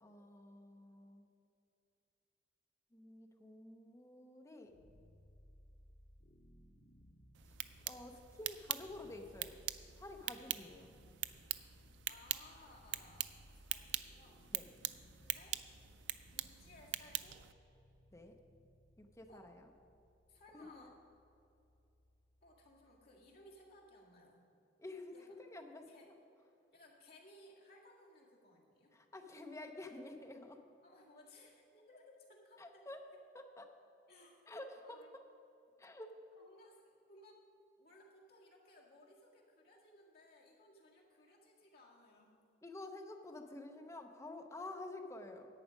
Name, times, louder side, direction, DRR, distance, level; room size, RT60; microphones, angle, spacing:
voice 1, 0.0-1.3 2.9-4.7 7.9-9.6 10.0-10.9 14.5-14.7 18.1-18.4 19.0-19.7 20.5-20.9 24.8-26.1 28.9-30.6 32.6-33.0 33.3-33.7 34.5-35.0 35.8-36.1 42.6-45.5, left 2 dB, 15° left, 4 dB, 0.7 m, -50 dB
sound 1, 4.7-23.7, equal, 85° left, 0.9 m, -64 dB
sound 2, 7.3-17.5, right 13 dB, 85° right, 0.4 m, -44 dB
voice 2, 12.1-14.4 15.2-15.6 16.3-17.5 19.3-19.5 20.3-20.9 22.4-24.5 25.1-25.4 25.9-26.1 26.7-28.9 30.8-33.2 34.1-34.5 34.8-35.1 36.3-37.4 37.8-42.4, left 1 dB, 55° left, -3 dB, 1.9 m, -62 dB
10.5 x 8.5 x 5.1 m, 2.7 s
head